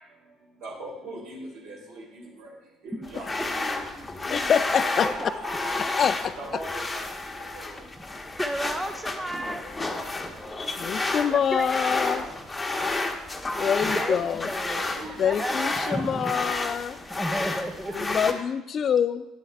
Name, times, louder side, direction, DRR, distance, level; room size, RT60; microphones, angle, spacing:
voice 1, 0.2-2.6 2.8-6.0 6.3-7.8 8.7-10.1 11.5-12.3 12.7-12.9 14.4-16.7, right 1 dB, 60° right, -4 dB, 3.5 m, -42 dB
sound 1, 1.5-2.9 3.6-5.8 6.2-6.3 6.7-8.8 9.1-11.1 12.2-14.7 15.0-18.2, right 4 dB, 45° right, 1.1 m, -50 dB
sound 2, 3.0-18.3, left 2 dB, 15° left, 1.0 m, -31 dB
voice 2, 4.3-5.1 6.0-6.3 10.8-12.3 13.6-14.5 15.2-17.0 17.9-19.3, left 8 dB, 45° left, 14 dB, 0.3 m, -25 dB
voice 3, 8.4-9.6 11.3-11.9 13.8-14.8 15.2-16.3 17.1-18.2, right 1 dB, 10° right, 7 dB, 0.6 m, -33 dB
10.5 x 7.6 x 3.4 m, 0.97 s
figure-of-eight pair, 55°, 0 cm